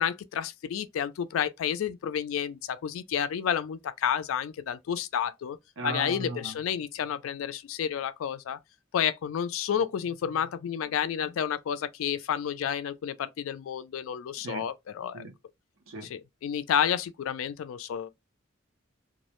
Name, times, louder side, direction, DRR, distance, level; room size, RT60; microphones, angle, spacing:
voice 1, 0.0-5.6 5.8-8.6 8.9-15.2 16.0-18.1, left 8 dB, 85° left, 0.3 m, -30 dB
voice 2, 5.8-6.5 14.4-14.7 15.1-15.3 15.9-16.1, right 1 dB, 85° right, 0.6 m, -36 dB
2.3 x 2.0 x 2.9 m
head